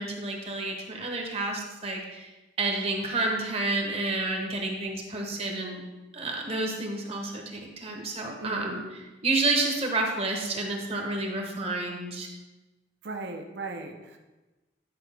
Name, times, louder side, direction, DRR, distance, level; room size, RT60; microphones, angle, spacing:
voice 1, 0.0-2.3 2.6-5.8 6.1-8.8 9.2-12.3, right 2 dB, 30° right, 1 dB, 1.0 m, -30 dB
voice 2, 8.4-8.9 13.0-14.2, right 2 dB, 60° right, 3 dB, 0.7 m, -37 dB
10.5 x 4.8 x 3.4 m, 1.1 s
head